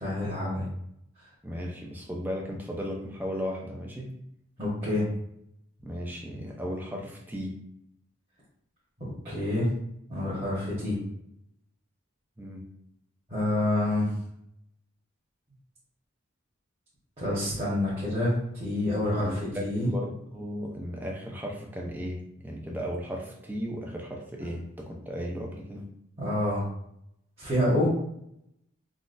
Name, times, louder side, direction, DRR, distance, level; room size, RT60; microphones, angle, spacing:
voice 1, 0.0-0.6 4.6-5.0 9.0-9.7 10.1-11.0 13.3-14.1 17.2-18.3 18.6-19.9 26.2-26.6 27.4-27.9, left 1 dB, 30° right, -10 dB, 1.1 m, -27 dB
voice 2, 1.4-4.1 5.8-7.6 12.4-12.6 19.1-25.8, equal, 10° right, -1 dB, 0.4 m, -36 dB
3.8 x 2.3 x 2.5 m, 0.75 s
head